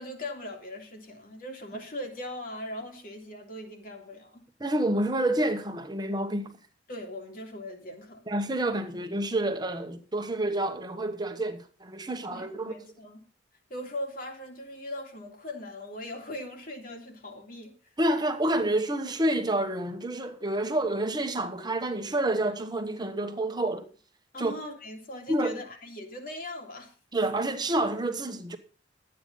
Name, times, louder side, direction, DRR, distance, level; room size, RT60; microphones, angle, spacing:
voice 1, 0.0-4.5 6.9-8.2 12.3-13.2 13.7-17.7 24.3-26.9, left 1 dB, 50° left, 2.5 m, -40 dB
voice 2, 4.6-6.5 8.3-12.7 18.0-23.9 24.4-24.5 25.3-25.6 27.1-28.6, right 1 dB, 20° right, 1.2 m, -28 dB
12.0 x 8.9 x 5.5 m
head